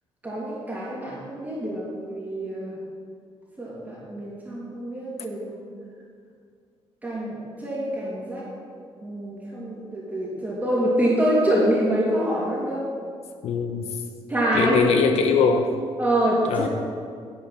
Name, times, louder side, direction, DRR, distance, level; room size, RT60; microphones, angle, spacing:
voice 1, 0.2-2.8 3.6-5.5 7.0-8.4 9.0-12.8 14.3-14.9 16.0-16.7, right 1 dB, 15° right, -7 dB, 2.9 m, -25 dB
voice 2, 13.4-13.9 14.5-15.7 16.5-16.7, left 5 dB, 80° left, 6 dB, 1.0 m, -21 dB
9.4 x 8.4 x 5.5 m, 2.2 s
cardioid pair, 110°, 11 cm